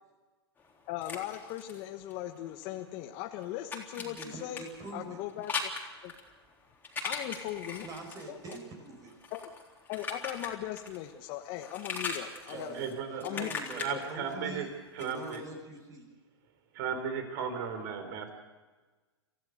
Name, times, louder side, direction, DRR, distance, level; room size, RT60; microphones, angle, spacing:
sound 1, 0.6-2.7 3.0-11.1 11.4-15.4, left 4 dB, 15° left, 3.8 m, -40 dB
voice 1, 0.9-4.6 4.9-5.7 6.0-6.1 7.0-7.9 8.3-8.4 9.3-9.5 9.9-12.9 13.2-13.5 13.9-14.0, left 13 dB, 40° left, 5 dB, 1.3 m, -38 dB
voice 2, 3.9-5.2 7.8-9.1 12.5-14.7 15.0-16.1, right 2 dB, 25° right, 3 dB, 5.0 m, -44 dB
voice 3, 12.5-13.5 13.7-14.7 14.9-15.4 16.7-18.3, right 7 dB, 50° right, 8 dB, 4.4 m, -36 dB
27.0 x 16.0 x 6.7 m, 1.3 s
hypercardioid pair, 115°, 14 cm